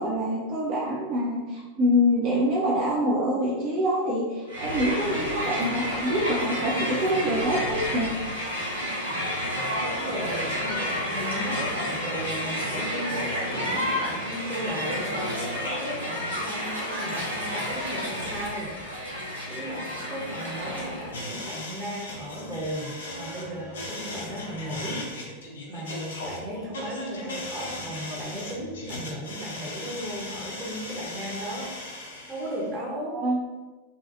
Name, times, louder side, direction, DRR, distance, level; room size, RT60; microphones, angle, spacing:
voice 1, 0.0-8.1 33.1-33.4, equal, 45° right, -6 dB, 0.6 m, -25 dB
Crowd, 4.5-21.2, equal, 80° right, 0.7 m, -30 dB
voice 2, 9.8-25.3 25.7-31.7 32.1-33.2, equal, 20° right, -5 dB, 0.9 m, -36 dB
sound 1, 21.1-32.7, left 1 dB, 65° left, 0.5 m, -38 dB
2.6 x 2.3 x 2.6 m, 1.3 s
figure-of-eight pair, 90°, 0 cm